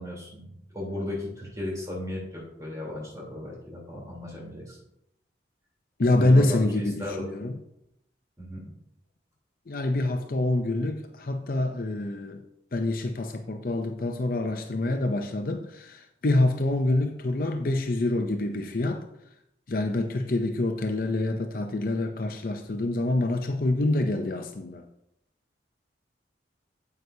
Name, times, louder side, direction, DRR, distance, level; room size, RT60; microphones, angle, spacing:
voice 1, 0.0-4.8 6.2-7.3 8.4-8.7, left 1 dB, 15° right, -4 dB, 3.5 m, -36 dB
voice 2, 6.0-7.6 9.7-12.4 12.7-19.0 19.7-24.8, left 2 dB, 50° left, 6 dB, 0.6 m, -26 dB
9.5 x 7.9 x 2.8 m, 0.79 s
head